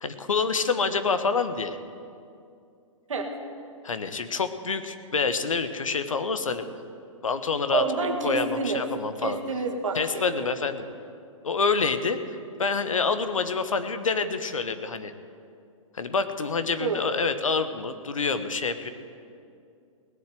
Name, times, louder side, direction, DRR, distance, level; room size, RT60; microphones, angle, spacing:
voice 1, 0.0-1.8 3.8-6.7 7.2-7.8 8.2-9.4 9.9-10.8 11.4-15.1 15.9-18.9, left 4 dB, 75° left, 10 dB, 1.0 m, -27 dB
voice 2, 7.7-8.8 9.2-10.5 16.8-17.0, right 4 dB, 70° right, 3 dB, 1.9 m, -28 dB
17.5 x 7.3 x 7.8 m, 2.4 s
figure-of-eight pair, 120°, 17 cm